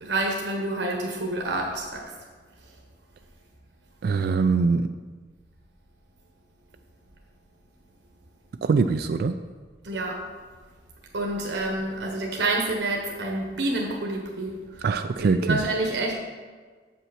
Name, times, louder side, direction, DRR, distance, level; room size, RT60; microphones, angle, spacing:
voice 1, 0.0-2.0 9.8-10.2 11.1-14.5 15.2-16.1, right 2 dB, 80° right, 0 dB, 1.1 m, -28 dB
voice 2, 4.0-4.9 8.6-9.4 14.8-15.6, right 4 dB, 60° right, 8 dB, 0.3 m, -23 dB
7.4 x 5.5 x 5.9 m, 1.5 s
head